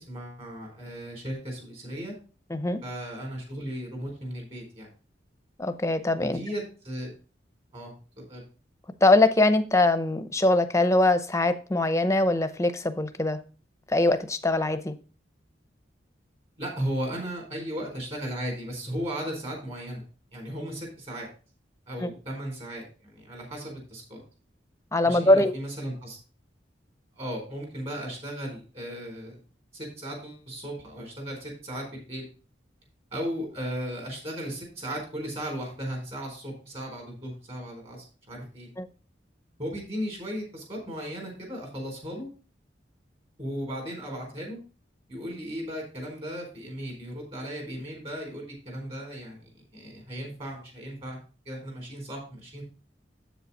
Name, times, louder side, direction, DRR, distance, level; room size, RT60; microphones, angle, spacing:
voice 1, 0.0-2.1 2.8-4.9 6.2-7.1 7.7-8.4 16.6-20.0 20.3-21.3 21.9-24.2 25.0-26.2 27.1-29.3 29.7-32.3 33.1-38.7 39.6-42.3 43.4-44.6 45.1-51.2 51.5-52.6, equal, 35° right, 0 dB, 3.8 m, -36 dB
voice 2, 2.5-2.8 5.6-6.4 9.0-13.4 13.9-14.9 22.0-22.1 24.9-25.5 38.8-38.9, left 2 dB, 15° left, 10 dB, 0.7 m, -22 dB
8.0 x 7.0 x 4.1 m, 0.36 s
head